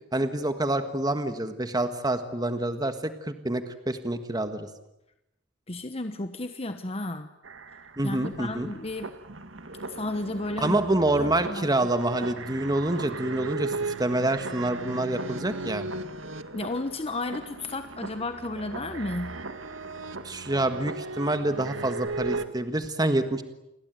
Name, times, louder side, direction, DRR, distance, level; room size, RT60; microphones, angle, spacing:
voice 1, 0.1-4.7 8.0-8.7 10.6-15.9 20.2-23.4, right 1 dB, 20° right, 8 dB, 1.6 m, -27 dB
voice 2, 5.7-7.3 8.0-9.1 9.8-10.8 11.2-11.7 16.5-19.4, left 2 dB, 30° left, 8 dB, 1.2 m, -33 dB
sound 1, 7.4-22.5, right 3 dB, 75° right, 1.9 m, -37 dB
29.5 x 22.0 x 9.3 m, 0.88 s
head